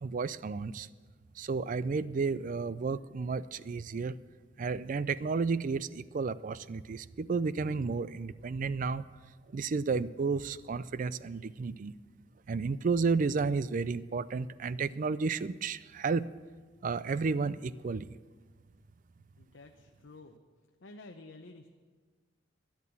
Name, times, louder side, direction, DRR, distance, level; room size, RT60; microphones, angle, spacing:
voice 1, 0.0-0.9 1.4-4.2 4.6-9.0 9.5-11.9 12.5-16.3 16.8-18.2, right 4 dB, 40° right, 17 dB, 0.4 m, -32 dB
voice 2, 19.4-20.4 20.8-21.7, left 2 dB, 70° left, 4 dB, 0.8 m, -51 dB
12.5 x 10.5 x 7.1 m, 1.5 s
head